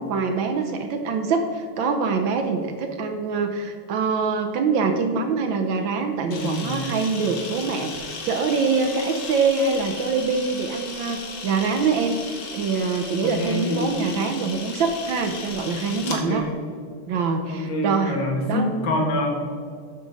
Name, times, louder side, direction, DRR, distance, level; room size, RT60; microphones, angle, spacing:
voice 1, 0.0-16.5 17.1-18.7, right 4 dB, 70° right, 5 dB, 1.2 m, -24 dB
Camera, 6.3-16.2, left 4 dB, 90° left, 2.1 m, -36 dB
voice 2, 6.3-6.9 13.2-13.9 16.1-16.5 17.5-19.3, left 1 dB, 60° left, -2 dB, 2.1 m, -26 dB
8.5 x 6.3 x 4.0 m, 2.2 s
omnidirectional pair, 2.4 m